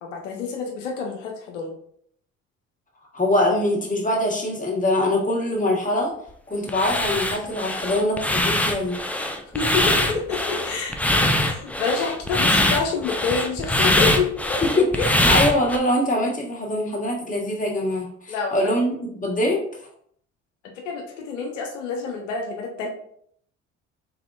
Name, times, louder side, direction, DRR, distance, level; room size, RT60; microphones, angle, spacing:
voice 1, 0.0-1.7 9.5-15.1 18.3-18.8 20.8-22.9, left 5 dB, 85° left, 1 dB, 0.7 m, -28 dB
voice 2, 3.1-6.1 6.5-9.0 14.6-19.7, left 1 dB, 20° left, -2 dB, 1.7 m, -23 dB
sound 1, 6.7-15.8, left 1 dB, 5° left, 0.5 m, -22 dB
4.1 x 3.8 x 2.6 m, 0.64 s
hypercardioid pair, 55°, 36 cm